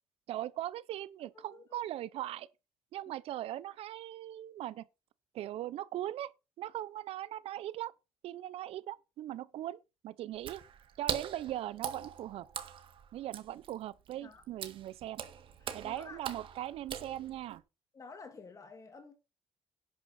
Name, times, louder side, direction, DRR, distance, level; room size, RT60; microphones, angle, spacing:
voice 1, 0.3-2.5 2.9-4.8 5.3-6.3 6.6-7.9 8.2-9.8 10.0-10.6 11.0-12.5 13.1-15.2 15.7-17.6, right 13 dB, 80° right, 0.8 m, -39 dB
voice 2, 1.4-1.9 14.2-14.4 15.6-16.2 17.9-19.1, left 4 dB, 35° left, 2.3 m, -51 dB
Water / Splash splatter, 10.3-17.6, right 8 dB, 60° right, 1.8 m, -42 dB
11.0 x 9.7 x 4.3 m
cardioid pair, 115°, 10 cm